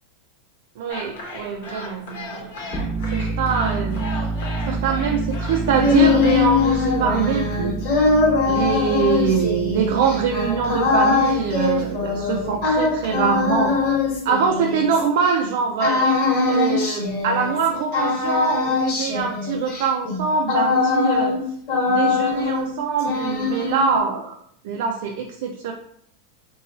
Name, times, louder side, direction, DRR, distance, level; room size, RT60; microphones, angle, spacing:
voice 1, 0.8-2.8 3.1-4.0 4.7-7.8 8.5-13.7 14.2-16.0 16.5-21.3 21.9-24.4 24.6-25.7, right 6 dB, 70° right, 2 dB, 0.4 m, -23 dB
sound 1, 0.9-6.8, left 2 dB, 80° left, 0.9 m, -36 dB
sound 2, 2.6-14.2, right 3 dB, 25° left, 0.9 m, -30 dB
sound 3, 5.5-15.3 15.8-17.7 17.9-21.4 21.7-22.7 23.0-24.0, left 4 dB, 50° left, 1.2 m, -22 dB
2.5 x 2.3 x 4.0 m, 0.66 s
supercardioid pair, 145°, 0 cm